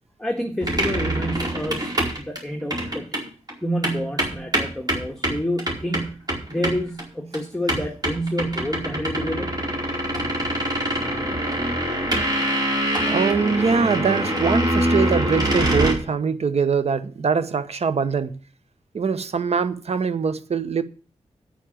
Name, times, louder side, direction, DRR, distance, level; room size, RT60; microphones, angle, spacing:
voice 1, 0.2-1.9 2.2-3.2 3.6-9.5, equal, 5° left, 1.6 m, -28 dB
sound 1, 0.6-3.2 3.5-3.6 3.8-7.1 7.3-7.4 7.7-15.9, right 1 dB, 35° right, 4.7 m, -24 dB
voice 2, 13.1-18.3 18.9-20.8, right 5 dB, 65° right, 1.1 m, -23 dB
9.0 x 6.9 x 8.8 m
cardioid pair, 60°, 12 cm